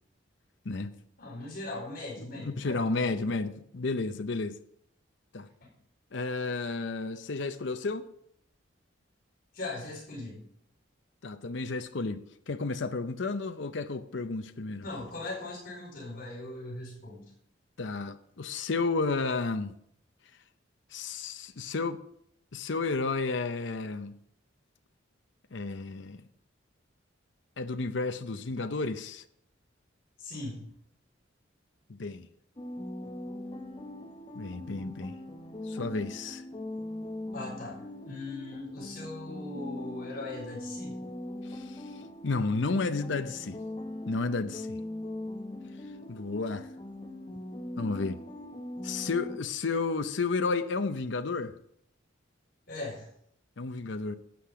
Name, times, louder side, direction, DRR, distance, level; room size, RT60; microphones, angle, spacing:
voice 1, 1.2-3.3 5.6-5.7 9.5-10.4 14.8-17.2 30.2-30.6 37.3-37.8 38.0-41.0 52.7-53.1, left 2 dB, 50° left, 4.7 m, -39 dB
voice 2, 2.3-4.6 5.3-5.5 6.1-8.1 11.2-14.8 17.8-19.7 20.9-22.0 22.5-24.1 25.5-26.2 27.6-29.2 32.0-32.3 34.3-35.2 35.6-36.4 41.5-41.8 42.2-43.6 44.1-44.8 46.1-46.7 47.8-48.2 48.8-51.5 53.6-54.1, left 3 dB, 65° left, 0.7 m, -32 dB
sound 1, 32.6-49.4, left 1 dB, 25° left, 0.9 m, -41 dB
12.0 x 8.7 x 4.9 m
head